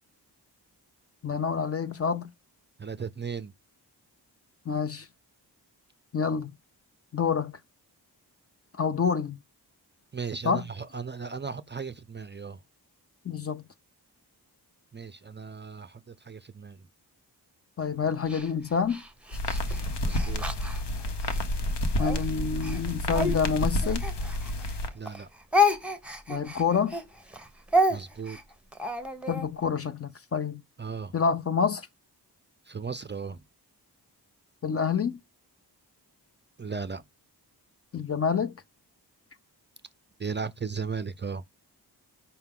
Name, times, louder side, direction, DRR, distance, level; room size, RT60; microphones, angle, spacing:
voice 1, 1.2-2.3 4.7-5.1 6.1-6.5 7.1-7.5 8.8-9.4 10.4-10.6 13.2-13.6 17.8-19.0 22.0-24.0 26.3-26.9 29.3-30.6 31.1-31.9 34.6-35.2 37.9-38.5, left 6 dB, 35° left, 0.5 m, -27 dB
voice 2, 2.8-3.5 10.1-12.6 14.9-16.8 20.0-20.4 24.9-25.3 27.9-28.4 30.8-31.1 32.7-33.4 36.6-37.0 40.2-41.4, right 5 dB, 30° right, 0.4 m, -36 dB
Speech, 18.3-21.4 22.0-24.8 25.0-29.5, left 1 dB, 5° right, 0.8 m, -29 dB
sound 1, 19.3-24.9, left 1 dB, 80° left, 0.9 m, -29 dB
5.6 x 2.2 x 3.6 m
wide cardioid pair, 90°, 40 cm